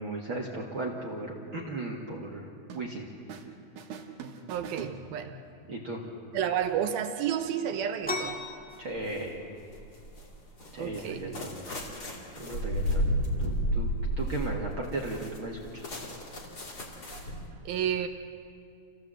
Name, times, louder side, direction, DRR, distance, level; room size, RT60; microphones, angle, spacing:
voice 1, 0.0-3.1 5.6-6.0 8.8-9.4 10.7-11.6 12.4-13.1 13.4-13.9 14.2-15.9, right 2 dB, 45° right, -1 dB, 2.0 m, -36 dB
sound 1, 2.7-3.5 3.8-5.5, right 6 dB, 65° right, 2.7 m, -44 dB
voice 2, 4.5-5.3 6.3-8.4 10.8-11.4 17.1-18.1, right 9 dB, 85° right, 7 dB, 2.9 m, -31 dB
sound 2, 8.0-17.4, left 2 dB, 5° left, 0.7 m, -44 dB
sound 3, 8.7-9.3 9.7-17.5, equal, 30° left, 2.7 m, -32 dB
28.0 x 16.5 x 7.7 m, 2.5 s
omnidirectional pair, 4.3 m